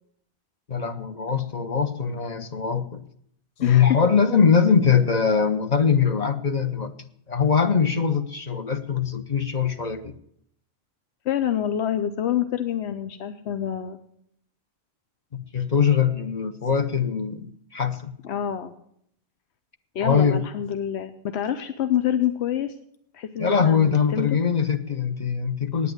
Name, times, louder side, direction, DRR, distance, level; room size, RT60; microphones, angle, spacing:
voice 1, 0.7-3.0 3.6-6.9 7.3-10.1 15.3-18.2 20.0-20.5 23.4-25.9, left 6 dB, 45° left, 8 dB, 0.9 m, -22 dB
voice 2, 3.6-4.0 11.2-14.0 18.2-18.7 19.9-22.7 23.1-24.4, left 10 dB, 90° left, 10 dB, 1.0 m, -27 dB
9.4 x 8.5 x 9.3 m, 0.70 s
omnidirectional pair, 1.1 m